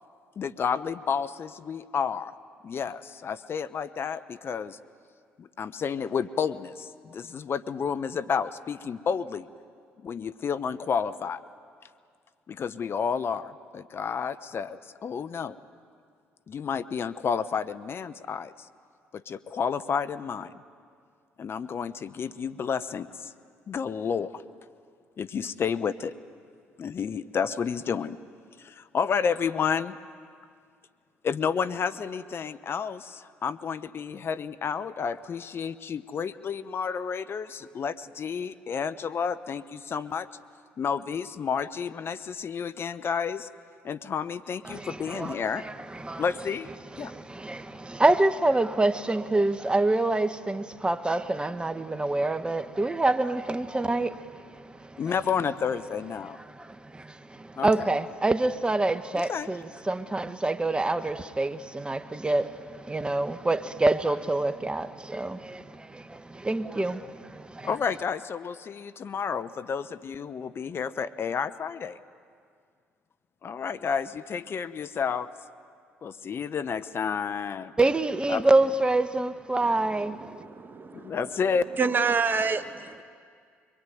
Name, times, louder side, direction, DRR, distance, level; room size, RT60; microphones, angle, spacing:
voice 1, 0.4-2.3 2.6-4.8 5.4-9.5 10.0-11.4 12.5-15.6 16.5-18.5 19.1-20.6 21.4-23.3 23.7-24.4 25.2-26.1 26.8-28.2 28.6-30.0 31.2-40.3 40.8-43.5 43.8-45.6 46.2-47.1 55.0-56.4 57.6-57.9 59.1-59.5 67.6-72.0 73.4-75.3 76.0-77.7 78.3-78.5 81.0-81.6, left 6 dB, 45° left, 13 dB, 0.9 m, -31 dB
voice 2, 44.6-46.2 46.9-55.0 56.5-67.7 77.8-80.3, right 2 dB, 15° right, 11 dB, 1.4 m, -27 dB
voice 3, 80.3-80.7 81.8-83.0, right 5 dB, 40° right, 10 dB, 1.4 m, -26 dB
24.0 x 23.5 x 9.3 m, 2.2 s
hypercardioid pair, 55°, 5 cm